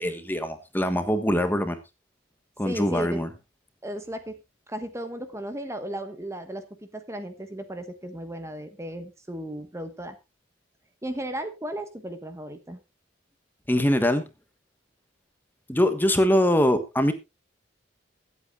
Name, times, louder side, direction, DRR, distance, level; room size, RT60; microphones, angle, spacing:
voice 1, 0.0-1.8 2.6-3.3 13.7-14.3 15.7-17.1, equal, 10° left, 1.3 m, -23 dB
voice 2, 2.6-3.2 3.8-4.4 4.7-6.6 6.9-10.2 11.0-12.8, right 1 dB, 15° right, 1.2 m, -35 dB
22.5 x 8.4 x 2.4 m
head